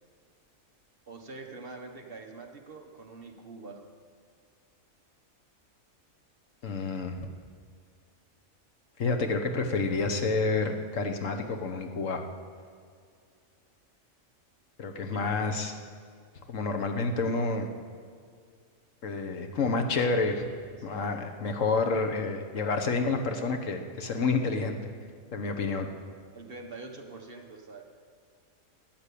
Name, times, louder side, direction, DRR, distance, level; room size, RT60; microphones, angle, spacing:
voice 1, 1.1-3.8 15.1-15.3 20.8-21.1 26.3-27.8, right 3 dB, 45° right, 2 dB, 1.3 m, -45 dB
voice 2, 6.6-7.3 9.0-12.2 14.8-15.7 16.5-17.7 19.0-20.5 20.8-24.8 25.3-25.9, left 3 dB, 65° left, 5 dB, 1.4 m, -29 dB
12.0 x 9.5 x 8.4 m, 2.2 s
omnidirectional pair, 1.4 m